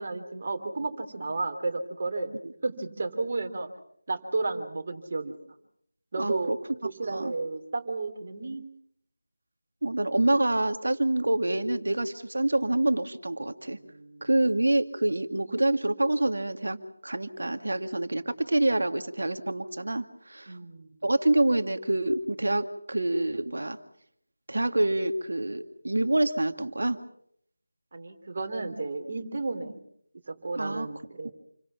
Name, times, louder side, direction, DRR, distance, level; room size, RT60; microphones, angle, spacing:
voice 1, 0.0-2.3 2.6-3.7 4.1-5.4 6.1-6.5 6.8-8.7 13.7-14.3 20.5-20.9 27.9-29.8 30.3-31.3, right 3 dB, 40° right, 5 dB, 3.3 m, -32 dB
voice 2, 6.2-6.6 7.1-7.3 9.8-13.8 14.2-16.8 17.0-20.5 21.0-23.8 24.5-27.0 30.6-30.9 31.2-31.3, right 1 dB, 60° right, 8 dB, 2.2 m, -26 dB
29.0 x 23.5 x 5.9 m, 0.69 s
figure-of-eight pair, 165°, 0 cm